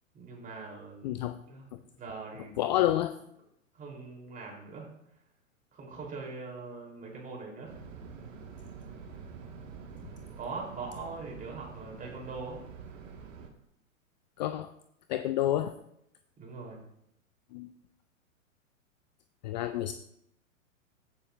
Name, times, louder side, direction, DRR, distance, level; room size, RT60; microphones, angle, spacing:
voice 1, 0.1-1.2 1.5-1.7 2.0-3.0 3.7-4.9 5.7-7.8 10.4-12.6 16.4-16.8, right 4 dB, 20° right, -2 dB, 3.5 m, -42 dB
voice 2, 1.0-1.4 1.7-1.8 2.6-3.1 14.4-14.7 15.1-15.7 17.5-17.7 19.4-19.9, left 13 dB, 35° left, 11 dB, 0.4 m, -29 dB
sound 1, 7.7-13.5, right 5 dB, 65° right, 1.8 m, -46 dB
15.0 x 6.9 x 2.6 m, 0.76 s
hypercardioid pair, 120°, 41 cm